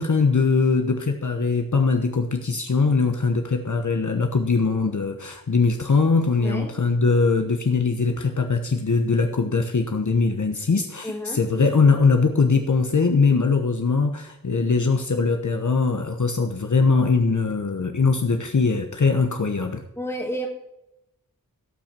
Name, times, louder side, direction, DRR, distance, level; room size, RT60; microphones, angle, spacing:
voice 1, 0.0-19.8, left 4 dB, 55° left, 5 dB, 1.2 m, -21 dB
voice 2, 6.4-6.7 11.0-11.4 20.0-20.5, equal, 5° left, -1 dB, 2.3 m, -30 dB
17.0 x 5.8 x 7.5 m, 0.85 s
wide cardioid pair, 70°, 35 cm